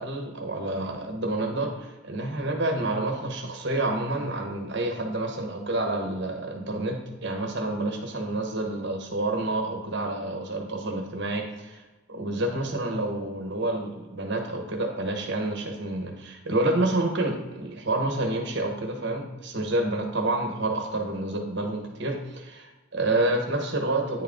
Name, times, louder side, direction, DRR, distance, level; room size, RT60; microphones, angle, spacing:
voice 1, 0.0-11.8 12.1-24.2, right 2 dB, 55° right, 2 dB, 1.2 m, -28 dB
9.4 x 3.8 x 3.6 m, 1.2 s
head